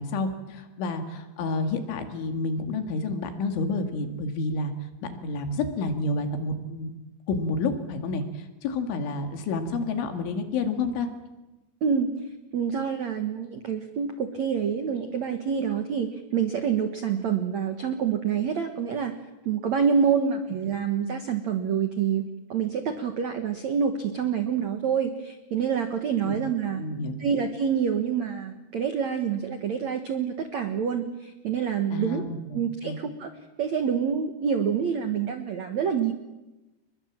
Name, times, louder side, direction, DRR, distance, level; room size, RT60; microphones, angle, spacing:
voice 1, 0.0-4.7 5.2-6.9 7.3-11.1 26.2-26.4 26.8-27.1 31.9-33.0, left 3 dB, 75° left, 6 dB, 4.6 m, -29 dB
voice 2, 12.5-19.1 19.4-22.2 22.5-26.8 27.2-32.2 32.5-33.3 33.6-36.1, right 7 dB, 85° right, 7 dB, 1.6 m, -27 dB
30.0 x 21.5 x 7.5 m, 1.0 s
omnidirectional pair, 5.6 m